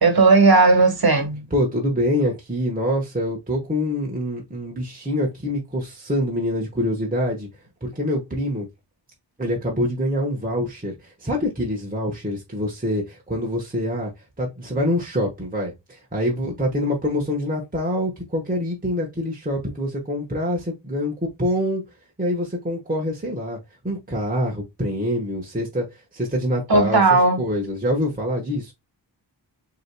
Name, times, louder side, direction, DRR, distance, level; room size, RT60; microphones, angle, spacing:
voice 1, 0.0-1.5 26.7-27.4, right 3 dB, 55° right, 1.4 m, -16 dB
voice 2, 1.5-7.5 7.8-8.7 9.4-14.1 14.4-21.8 22.2-23.6 23.8-25.9 26.1-27.0 27.4-28.7, equal, 20° right, 1.2 m, -25 dB
6.2 x 3.0 x 2.2 m
cardioid pair, 55°, 44 cm